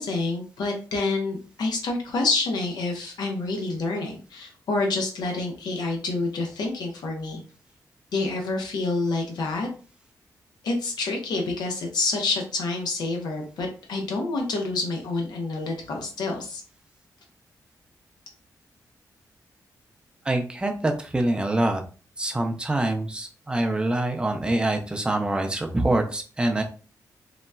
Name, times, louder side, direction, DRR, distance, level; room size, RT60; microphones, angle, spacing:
voice 1, 0.0-7.4 8.1-9.7 10.6-16.6, left 3 dB, 90° left, 2 dB, 0.7 m, -28 dB
voice 2, 20.3-21.8 22.2-26.6, right 1 dB, 15° right, 4 dB, 0.5 m, -25 dB
3.9 x 2.1 x 2.3 m, 0.38 s
wide cardioid pair, 120°, 7 cm